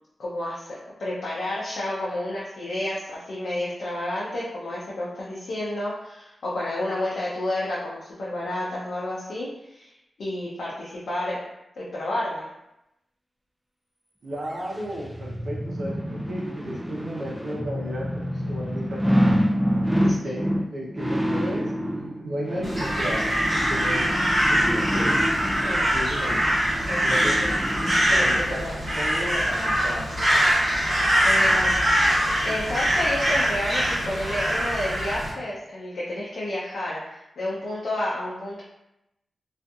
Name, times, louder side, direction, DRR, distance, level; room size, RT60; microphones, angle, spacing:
voice 1, 0.2-11.4 11.8-12.5 20.2-20.4 25.6-25.8 26.2-26.3 26.9-27.5 28.0-28.8 31.2-31.8 32.1-38.6, left 1 dB, 85° left, -7 dB, 0.6 m, -30 dB
voice 2, 14.2-19.2 20.0-24.1 24.4-25.1 25.8-26.4 27.0-27.5 28.2-28.6 28.9-30.1 32.5-32.6, equal, 70° right, -4 dB, 0.7 m, -34 dB
sound 1, 14.5-28.4 28.9-29.0, equal, 10° right, 0.4 m, -28 dB
Crow, 22.6-35.3, equal, 45° right, 1.2 m, -23 dB
2.6 x 2.4 x 2.4 m, 0.89 s
wide cardioid pair, 100°, 0 cm